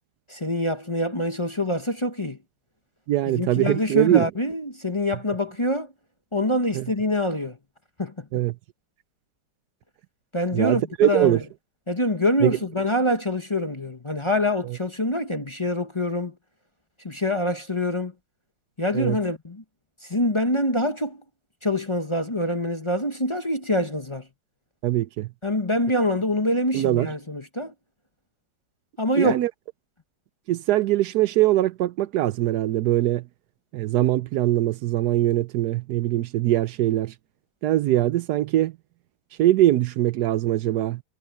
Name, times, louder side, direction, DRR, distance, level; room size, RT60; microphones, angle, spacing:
voice 1, 0.3-2.4 3.3-5.9 6.3-7.6 8.0-8.3 10.3-11.4 11.9-16.3 17.0-18.1 18.8-19.6 20.1-21.2 21.6-24.3 25.4-27.7 29.0-29.4, left 1 dB, 20° left, 0.9 m, -25 dB
voice 2, 3.1-4.3 6.7-6.8 8.3-8.5 10.5-11.4 12.4-12.6 14.6-14.8 18.9-19.2 24.8-25.3 26.7-27.1 29.2-29.5 30.5-33.2 33.7-37.1 37.6-38.7 39.4-41.0, right 14 dB, 70° right, 0.9 m, -22 dB
omnidirectional pair, 2.2 m